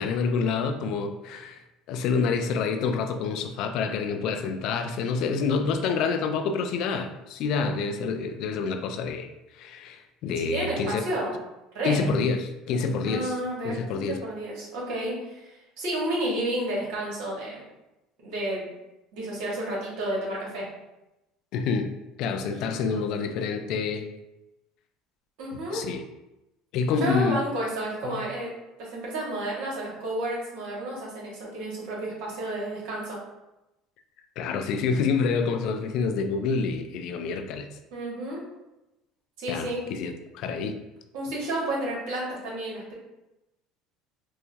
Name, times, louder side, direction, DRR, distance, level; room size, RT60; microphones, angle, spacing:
voice 1, 0.0-1.6 1.9-9.3 9.5-11.0 11.8-13.4 13.6-14.2 21.5-21.9 22.2-24.1 25.7-26.0 26.7-27.4 28.0-28.2 34.4-37.7 39.5-40.8, left 5 dB, 65° left, 6 dB, 0.4 m, -27 dB
voice 2, 10.4-11.3 11.7-12.0 13.1-17.6 18.2-18.7 19.1-20.7 25.4-25.8 27.0-28.5 28.8-33.2 37.9-38.4 39.4-39.8 41.1-42.9, right 1 dB, 70° right, -4 dB, 1.4 m, -31 dB
4.6 x 2.2 x 2.6 m, 0.96 s
hypercardioid pair, 75°, 0 cm